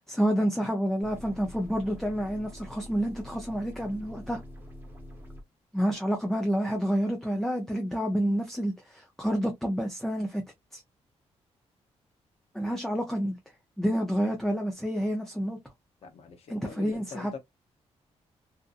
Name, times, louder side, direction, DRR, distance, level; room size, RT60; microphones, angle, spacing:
voice 1, 0.1-4.4 5.7-10.4 10.7-10.8 12.5-13.4 13.8-15.6 16.5-17.3, equal, 5° left, 0.5 m, -29 dB
sound 1, 1.0-5.4, equal, 15° right, 1.0 m, -45 dB
voice 2, 16.0-17.4, left 5 dB, 65° left, 0.7 m, -43 dB
2.6 x 2.5 x 2.4 m
wide cardioid pair, 150°, 11 cm